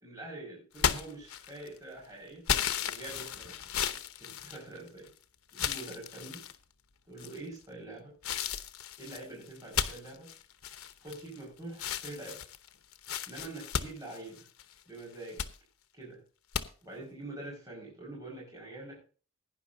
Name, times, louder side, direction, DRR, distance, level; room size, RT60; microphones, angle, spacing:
voice 1, 0.0-2.4 2.8-5.1 5.5-6.4 7.1-8.2 9.0-10.3 11.0-12.4 13.3-14.5 14.9-15.4 15.9-16.2 16.8-19.0, right 2 dB, 15° right, -4 dB, 5.4 m, -45 dB
sound 1, 0.8-1.8 2.5-5.1 5.5-6.6 7.2-7.6 8.2-11.4 11.7-14.7 15.1-15.5 16.5-16.7, left 8 dB, 90° left, 0.9 m, -34 dB
17.0 x 10.0 x 2.7 m, 0.38 s
head